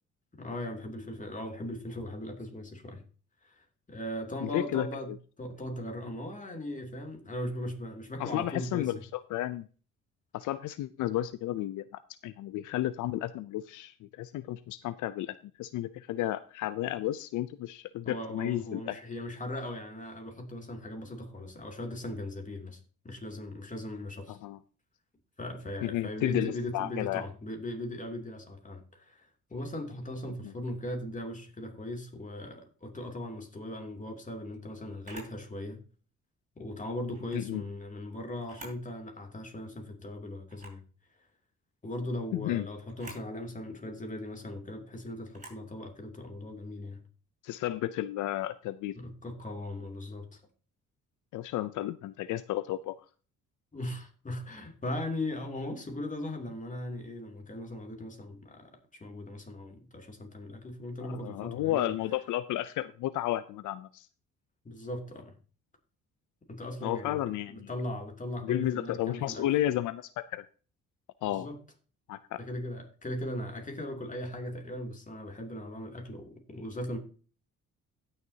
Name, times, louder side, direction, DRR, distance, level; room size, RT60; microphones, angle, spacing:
voice 1, 0.4-3.0 3.4-5.1 5.4-9.0 18.0-24.4 25.4-35.8 36.6-40.8 41.8-47.0 48.9-50.4 53.7-58.7 59.0-61.9 64.6-65.3 66.5-69.5 71.2-71.6 72.4-77.0, left 1 dB, 25° left, 2.8 m, -39 dB
voice 2, 4.4-4.9 8.2-9.7 10.3-11.8 12.2-19.0 24.3-24.6 25.8-27.2 30.4-30.5 37.3-37.6 42.3-42.7 47.4-48.9 51.3-53.0 61.0-64.1 66.8-67.7 68.4-70.4 71.2-71.5 72.1-72.4, left 14 dB, 80° left, 0.5 m, -32 dB
Camera, 35.0-35.4 37.1-37.4 38.4-38.9 39.3-39.4 40.5-40.8 42.9-43.3 45.3-45.6, right 2 dB, 25° right, 5.9 m, -48 dB
17.0 x 6.6 x 2.8 m
cardioid pair, 90°, 30 cm